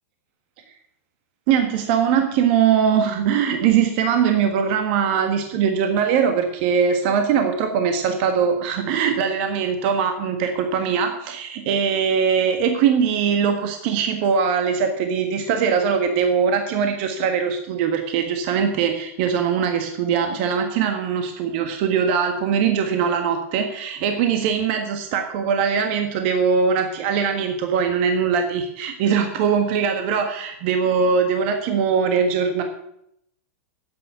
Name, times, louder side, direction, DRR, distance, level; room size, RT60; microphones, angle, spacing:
voice 1, 1.5-32.6, right 7 dB, 45° right, 6 dB, 1.5 m, -21 dB
10.0 x 8.2 x 8.2 m, 0.76 s
supercardioid pair, 150°, 8 cm